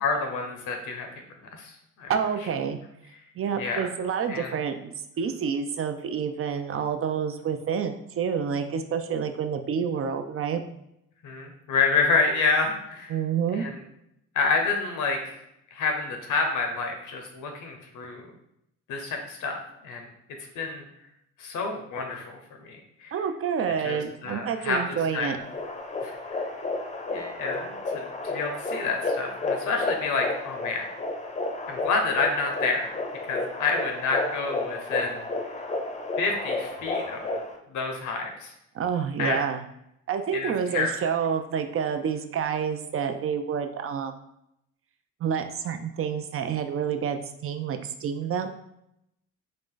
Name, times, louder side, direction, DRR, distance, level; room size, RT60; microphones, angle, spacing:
voice 1, 0.0-1.2 1.5-1.7 2.0-2.1 3.6-3.8 4.3-4.5 11.2-13.2 13.5-13.8 14.3-15.4 15.7-18.3 18.9-20.1 20.5-20.8 21.4-23.1 23.8-25.4 26.0-26.5 27.1-30.9 31.7-32.9 33.2-35.3 36.2-37.4 37.7-38.5 39.2-39.4 40.3-40.9, left 4 dB, 80° left, 3 dB, 0.9 m, -28 dB
voice 2, 2.1-2.8 3.4-10.6 13.1-13.7 23.1-25.4 38.7-39.6 40.1-44.2 45.2-48.5, right 7 dB, 45° right, 7 dB, 0.5 m, -28 dB
sound 1, 25.4-37.6, left 2 dB, 25° left, 0.6 m, -32 dB
3.8 x 2.4 x 3.7 m, 0.80 s
cardioid pair, 90°, 30 cm